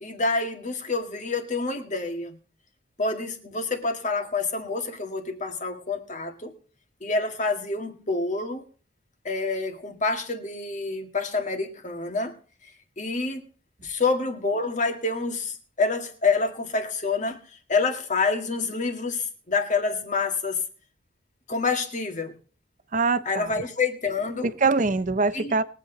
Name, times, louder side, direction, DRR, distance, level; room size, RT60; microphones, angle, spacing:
voice 1, 0.0-2.4 3.0-6.5 7.0-8.6 9.2-12.4 12.6-13.5 13.8-17.4 17.7-20.6 21.5-22.4 23.3-24.5 25.3-25.5, left 3 dB, 40° left, 1.9 m, -27 dB
voice 2, 22.9-23.5 24.4-25.6, right 4 dB, 40° right, 0.7 m, -23 dB
21.5 x 8.3 x 3.9 m
head